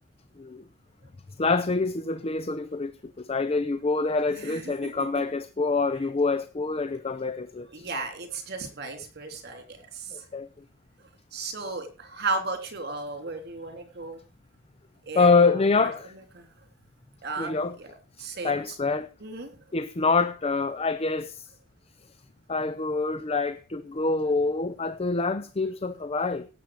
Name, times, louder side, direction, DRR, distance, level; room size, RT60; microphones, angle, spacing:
voice 1, 1.4-7.9 10.1-10.5 15.1-16.1 17.4-17.8 18.2-19.1 19.7-21.5 22.5-26.5, left 4 dB, 30° left, 0.5 m, -26 dB
voice 2, 4.3-4.9 7.7-10.2 11.3-14.2 15.1-15.9 16.3-16.4 17.2-17.9 18.2-18.7 19.2-19.5, right 3 dB, 50° right, 3.3 m, -35 dB
17.0 x 7.7 x 5.0 m
head